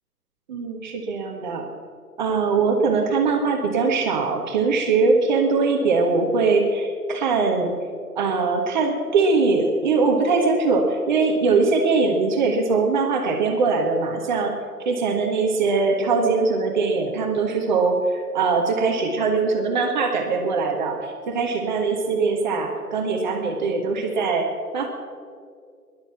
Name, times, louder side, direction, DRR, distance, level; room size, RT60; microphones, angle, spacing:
voice 1, 0.5-1.7 2.2-7.7 8.1-14.6 14.8-24.9, right 4 dB, 30° right, 2 dB, 1.4 m, -21 dB
19.0 x 11.5 x 5.9 m, 2.2 s
figure-of-eight pair, 135°, 46 cm